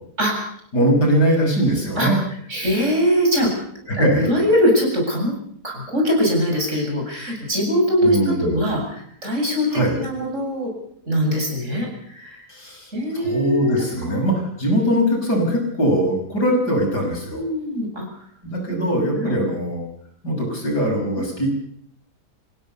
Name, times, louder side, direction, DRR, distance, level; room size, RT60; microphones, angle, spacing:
voice 1, 0.7-2.2 3.9-4.3 8.0-8.5 9.7-10.0 12.5-17.4 18.4-19.9 20.2-21.5, equal, 80° left, 1 dB, 6.9 m, -21 dB
voice 2, 2.5-3.5 3.9-5.4 5.6-10.7 11.0-12.5 12.9-14.2 17.3-18.1 19.1-19.3 21.2-21.3, equal, 45° right, 0 dB, 8.1 m, -22 dB
28.5 x 16.0 x 7.0 m, 0.67 s
omnidirectional pair, 1.8 m